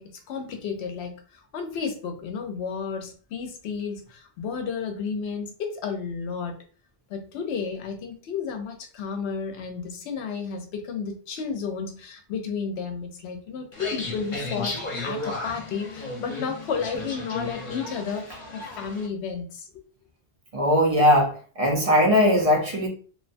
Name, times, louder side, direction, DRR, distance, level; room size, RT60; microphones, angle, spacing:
voice 1, 0.0-6.6 7.1-19.8, left 6 dB, 75° left, 0.8 m, -32 dB
sound 1, 13.7-19.1, left 2 dB, 50° left, 0.8 m, -34 dB
voice 2, 20.5-22.9, left 1 dB, 45° right, 0.5 m, -20 dB
2.6 x 2.2 x 2.5 m
omnidirectional pair, 1.1 m